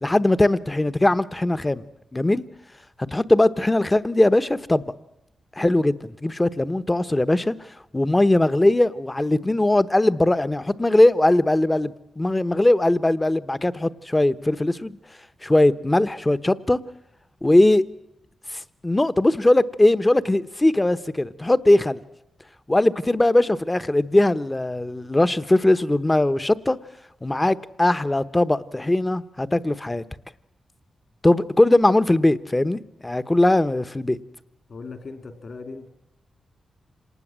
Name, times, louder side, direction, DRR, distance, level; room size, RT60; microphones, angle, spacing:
voice 1, 0.0-1.8 2.1-2.4 3.1-4.8 5.6-7.5 7.9-15.0 15.4-16.8 17.4-17.8 18.5-22.0 22.7-26.8 27.2-30.0 31.2-34.2, left 1 dB, 20° left, 1.1 m, -20 dB
voice 2, 34.7-35.9, left 4 dB, 60° left, 3.5 m, -38 dB
26.0 x 19.5 x 7.5 m
cardioid pair, 75°, 0 cm